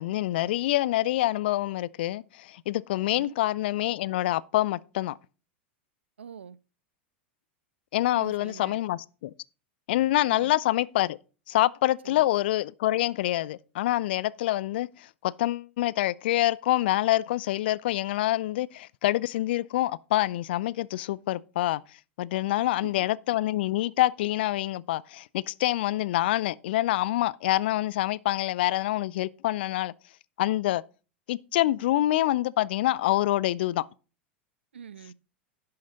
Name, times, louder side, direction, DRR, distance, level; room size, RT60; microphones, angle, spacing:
voice 1, 0.0-5.2 7.9-9.3 9.9-11.2 11.5-21.8 22.2-29.9 30.4-30.8 31.3-33.9, left 15 dB, 60° left, 0.4 m, -26 dB
voice 2, 6.2-6.6 8.1-8.8 10.2-10.6 12.0-12.3 22.8-22.9 34.7-35.1, right 7 dB, 80° right, 0.4 m, -44 dB
11.0 x 5.8 x 3.8 m
figure-of-eight pair, 90°, 6 cm